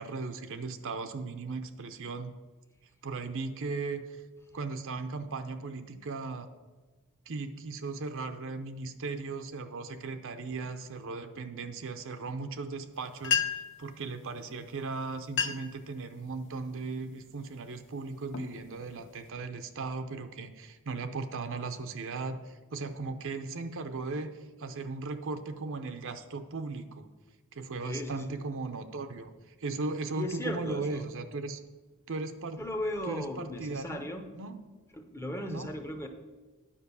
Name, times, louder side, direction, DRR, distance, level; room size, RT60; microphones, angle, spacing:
voice 1, 0.0-2.3 3.0-4.2 4.5-6.5 7.3-13.4 13.8-27.1 27.5-29.3 29.6-31.6 32.1-32.6 33.1-34.0 34.4-34.6 35.5-35.8, right 3 dB, 60° right, 8 dB, 0.7 m, -37 dB
sound 1, 12.9-13.0 13.2-13.8 14.7-14.8 15.2-15.8 16.3-16.6 17.2-17.5 18.0-19.3, left 6 dB, 60° left, 0.7 m, -32 dB
voice 2, 27.8-28.3 30.2-31.0 32.6-34.3 34.9-36.1, left 1 dB, 10° left, 6 dB, 0.8 m, -36 dB
10.0 x 5.1 x 6.9 m, 1.3 s
head